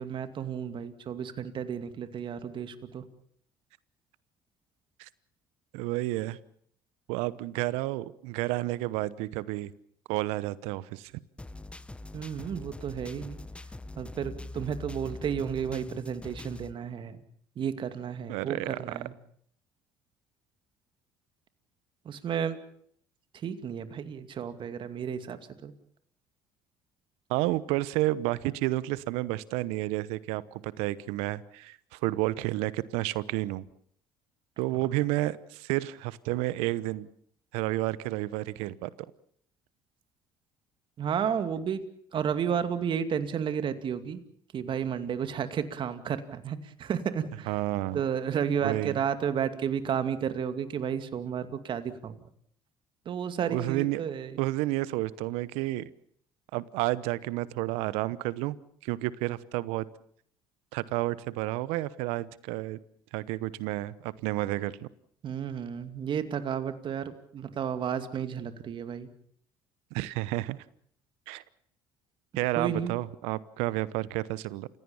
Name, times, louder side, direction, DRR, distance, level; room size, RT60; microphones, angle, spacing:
voice 1, 0.0-3.0 12.1-13.4 14.0-17.2 17.6-19.1 22.0-22.6 23.3-25.7 41.0-41.8 42.1-44.2 44.5-47.5 47.9-52.2 53.1-54.4 65.2-69.1 72.5-72.9, right 8 dB, 50° right, 10 dB, 2.4 m, -32 dB
voice 2, 5.7-6.4 7.1-9.7 10.1-11.1 18.3-18.7 27.3-33.6 34.6-37.1 37.5-38.9 47.5-48.0 48.6-49.0 53.5-54.0 54.4-55.9 56.5-58.6 58.8-59.9 60.7-62.8 63.1-64.9 69.9-70.6 71.3-71.4 72.4-74.7, right 18 dB, 80° right, 19 dB, 1.0 m, -30 dB
sound 1, 11.4-16.7, left 2 dB, 10° left, 1.1 m, -42 dB
29.5 x 16.5 x 7.1 m, 0.64 s
hypercardioid pair, 70°, 10 cm